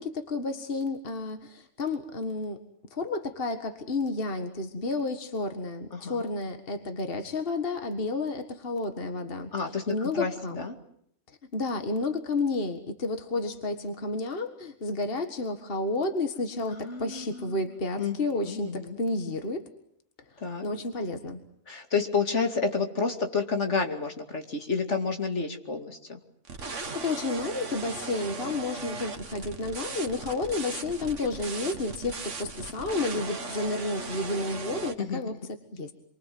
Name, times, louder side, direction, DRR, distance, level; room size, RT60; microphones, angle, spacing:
voice 1, 0.0-2.6 2.9-9.5 9.9-10.6 11.5-19.7 20.6-21.4 26.9-35.3 35.7-35.9, left 2 dB, 50° left, 7 dB, 2.0 m, -31 dB
voice 2, 5.9-6.2 9.5-10.8 16.7-17.6 18.0-18.2 18.4-19.0 20.4-20.7 21.7-26.2 35.0-35.2, left 5 dB, 70° left, 5 dB, 2.8 m, -30 dB
sound 1, 26.4-34.9, right 3 dB, 80° right, 2.0 m, -38 dB
28.0 x 24.0 x 7.8 m, 0.70 s
omnidirectional pair, 1.2 m